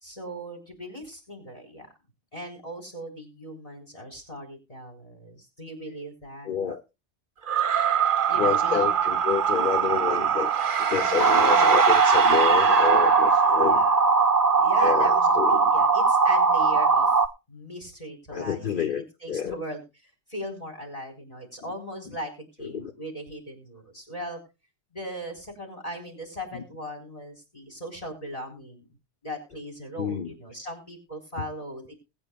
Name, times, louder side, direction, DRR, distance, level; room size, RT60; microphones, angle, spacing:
voice 1, 0.0-1.9 2.3-6.5 8.3-8.9 10.9-11.8 13.4-13.9 14.5-17.1 17.5-19.8 20.3-24.4 24.9-28.9 29.2-31.9, equal, 35° left, 5 dB, 4.4 m, -38 dB
voice 2, 6.4-6.8 8.4-10.5 10.8-13.8 14.8-15.7 18.3-19.6 22.6-22.9 26.5-26.6 30.0-30.7 31.4-31.5, left 8 dB, 50° left, 7 dB, 0.9 m, -29 dB
sound 1, 7.4-13.9, right 8 dB, 50° right, 0.9 m, -24 dB
sound 2, 11.2-17.3, right 4 dB, 20° right, 0.6 m, -20 dB
21.0 x 8.9 x 2.3 m, 0.27 s
omnidirectional pair, 1.1 m